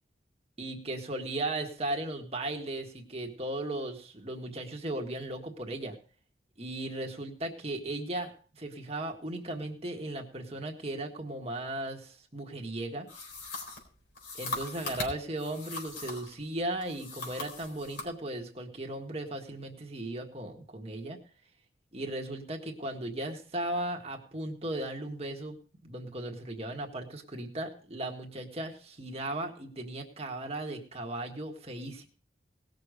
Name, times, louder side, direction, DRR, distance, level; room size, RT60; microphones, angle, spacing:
voice 1, 0.6-6.0 6.6-13.1 14.4-21.2 21.9-25.6 25.8-32.1, right 1 dB, 35° right, 2 dB, 1.7 m, -36 dB
sound 1, 13.1-16.4 16.8-18.1, left 3 dB, 70° left, 4.0 m, -40 dB
18.5 x 6.7 x 5.0 m, 0.42 s
head